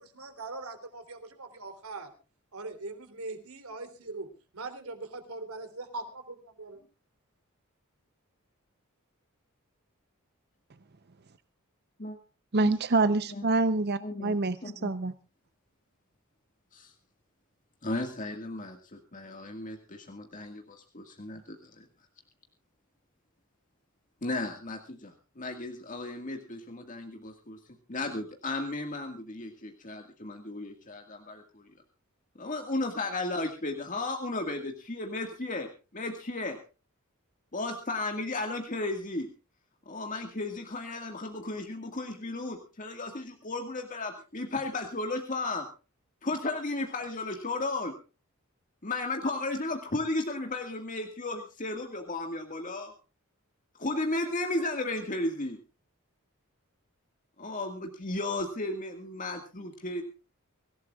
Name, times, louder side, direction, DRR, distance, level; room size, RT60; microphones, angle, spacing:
voice 1, 0.0-2.1 2.5-4.3 4.5-6.8, right 3 dB, 90° right, 7 dB, 3.3 m, -41 dB
voice 2, 12.5-15.1, right 3 dB, 50° right, 13 dB, 0.7 m, -26 dB
voice 3, 14.0-15.0 16.7-16.9 17.8-21.8 24.2-27.6 27.9-31.6 32.4-36.6 37.5-39.3 39.9-45.7 46.2-47.9 48.8-52.9 53.8-55.6 57.4-60.0, left 2 dB, 35° left, 4 dB, 1.8 m, -34 dB
25.0 x 16.0 x 2.4 m, 0.32 s
head